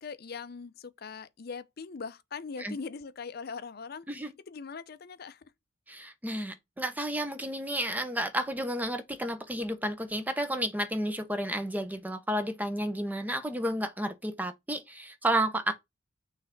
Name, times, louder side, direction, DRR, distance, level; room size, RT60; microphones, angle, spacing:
voice 1, 0.0-4.1 4.5-5.5, left 5 dB, 50° left, 0.5 m, -41 dB
voice 2, 5.9-15.7, right 1 dB, 10° right, 0.8 m, -31 dB
6.4 x 3.3 x 5.8 m
head